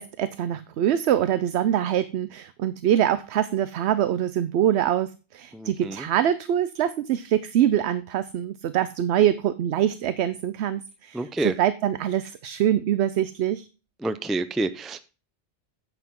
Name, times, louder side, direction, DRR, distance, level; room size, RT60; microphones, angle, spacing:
voice 1, 0.0-13.7, right 10 dB, 75° right, 14 dB, 0.9 m, -24 dB
voice 2, 5.5-6.0 11.1-11.5 14.0-15.0, right 2 dB, ahead, 12 dB, 0.4 m, -28 dB
9.8 x 8.4 x 3.6 m, 0.33 s
omnidirectional pair, 1.1 m